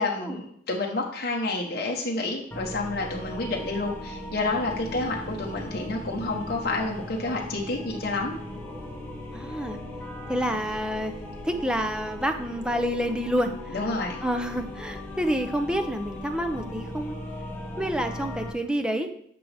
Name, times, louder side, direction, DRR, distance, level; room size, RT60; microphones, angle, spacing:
voice 1, 0.0-8.4 13.7-14.2, left 2 dB, 50° left, -2 dB, 1.1 m, -29 dB
sound 1, 2.5-18.5, left 1 dB, 10° left, 1.3 m, -38 dB
voice 2, 9.3-9.8 10.3-11.1 11.4-13.5 14.2-17.1 17.8-19.1, equal, 5° right, 6 dB, 0.6 m, -28 dB
10.5 x 6.2 x 3.5 m, 0.69 s
head